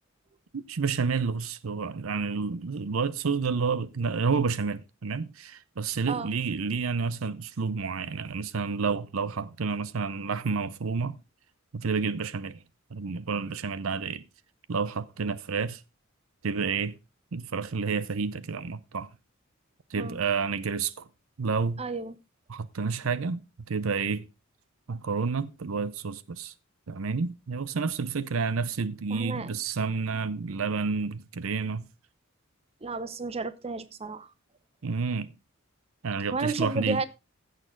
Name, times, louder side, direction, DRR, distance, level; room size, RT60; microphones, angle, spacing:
voice 1, 0.5-11.2 11.7-12.6 12.9-14.2 14.7-15.8 16.4-17.0 17.3-19.1 19.9-21.1 21.4-21.8 22.5-23.4 23.7-24.3 24.9-26.5 26.9-31.8 34.8-35.3 36.0-37.0, right 5 dB, 80° right, 0.6 m, -30 dB
voice 2, 21.8-22.2 29.1-29.5 32.8-34.3 36.3-37.0, right 3 dB, 30° right, 0.8 m, -32 dB
15.5 x 6.6 x 3.7 m
head